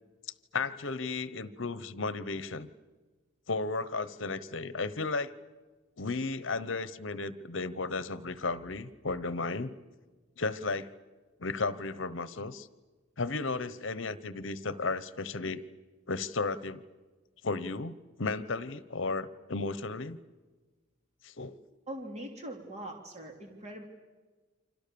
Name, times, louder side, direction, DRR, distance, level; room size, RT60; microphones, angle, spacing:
voice 1, 0.5-2.7 3.5-5.3 6.0-9.7 10.4-10.9 11.4-12.7 13.2-15.6 16.1-16.8 17.4-20.2 21.2-21.6, left 3 dB, 65° left, 16 dB, 1.0 m, -34 dB
voice 2, 21.9-23.8, right 1 dB, 35° right, 3 dB, 3.1 m, -42 dB
29.5 x 26.0 x 7.0 m, 1.3 s
head